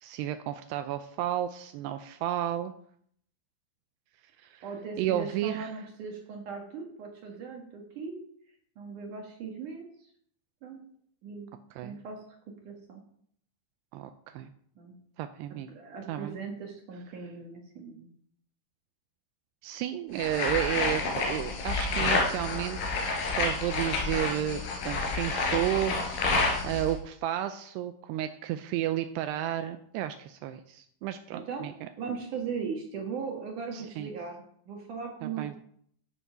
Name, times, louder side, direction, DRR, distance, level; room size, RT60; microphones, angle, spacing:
voice 1, 0.0-2.7 4.4-4.6 5.0-5.7 11.8-12.0 13.9-14.5 15.2-15.7 16.1-16.4 19.6-31.9 33.7-34.1 35.2-35.5, right 12 dB, 85° right, 9 dB, 2.4 m, -32 dB
voice 2, 4.6-8.2 8.8-9.9 10.6-10.8 11.2-11.5 11.8-12.2 12.6-13.0 14.8-15.0 15.8-18.1 31.3-31.7 32.0-35.6, right 5 dB, 60° right, 2 dB, 2.2 m, -38 dB
sound 1, 20.2-26.9, left 3 dB, 85° left, 5.4 m, -29 dB
14.5 x 6.9 x 5.6 m, 0.65 s
omnidirectional pair, 5.3 m